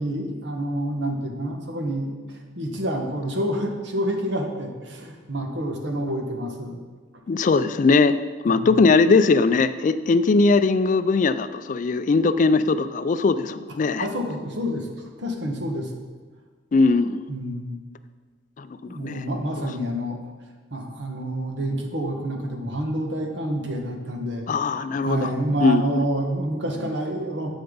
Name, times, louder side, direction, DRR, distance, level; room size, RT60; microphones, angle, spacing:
voice 1, 0.0-6.8 8.5-8.7 14.0-14.9 15.2-15.9 17.3-17.8 18.8-20.2 20.7-24.5 25.0-27.5, right 1 dB, 65° right, 2 dB, 1.4 m, -28 dB
voice 2, 7.3-8.2 8.4-14.0 16.7-17.2 18.6-19.2 24.5-25.3 25.6-26.0, left 4 dB, 40° left, 13 dB, 0.3 m, -20 dB
10.5 x 7.9 x 3.9 m, 1.4 s
head